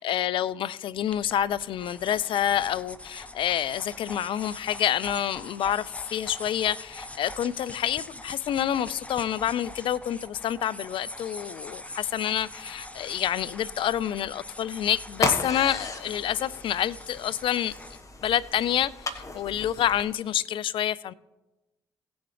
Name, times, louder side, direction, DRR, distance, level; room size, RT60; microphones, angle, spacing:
voice 1, 0.0-17.7 18.2-21.1, left 10 dB, 60° left, 0.4 m, -28 dB
sound 1, 1.1-20.0, left 1 dB, 15° left, 1.1 m, -43 dB
sound 2, 15.1-20.3, left 2 dB, 30° left, 1.4 m, -35 dB
17.5 x 7.0 x 3.3 m
hypercardioid pair, 45°, 10 cm